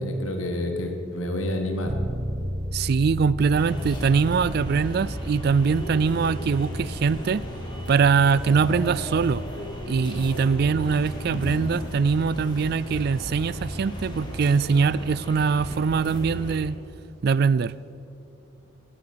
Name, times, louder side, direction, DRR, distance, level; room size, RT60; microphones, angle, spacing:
voice 1, 0.0-1.9 11.3-11.6, left 1 dB, 85° left, 4 dB, 1.7 m, -29 dB
sound 1, 1.9-11.6, equal, 20° right, 0.9 m, -36 dB
voice 2, 2.7-7.4 7.9-9.4 9.9-16.8 17.2-17.7, right 5 dB, 50° right, 19 dB, 0.3 m, -22 dB
sound 2, 3.5-16.5, equal, 25° left, 2.2 m, -35 dB
14.5 x 11.0 x 6.8 m, 2.7 s
head